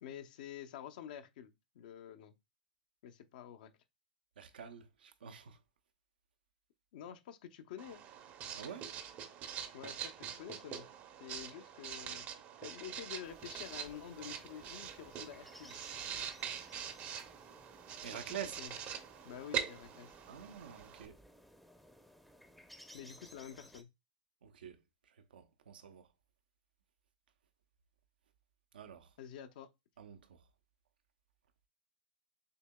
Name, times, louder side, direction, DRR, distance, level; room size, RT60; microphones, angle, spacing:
voice 1, 0.0-2.3 3.0-3.7 6.9-8.0 9.7-10.9 11.2-12.3 12.6-15.7 18.1-18.7 19.2-20.1 22.9-23.9 29.2-29.7, left 9 dB, 65° left, 0.7 m, -49 dB
voice 2, 4.4-5.6 8.5-8.9 18.0-18.6 20.3-21.2 24.4-24.8 25.0-26.1 28.7-29.1 30.0-30.5, right 8 dB, 85° right, 0.7 m, -47 dB
Writing, 7.8-21.1, right 8 dB, 35° right, 0.7 m, -44 dB
sound 1, 13.2-23.8, equal, ahead, 0.6 m, -59 dB
6.6 x 2.8 x 2.2 m
hypercardioid pair, 130°, 5 cm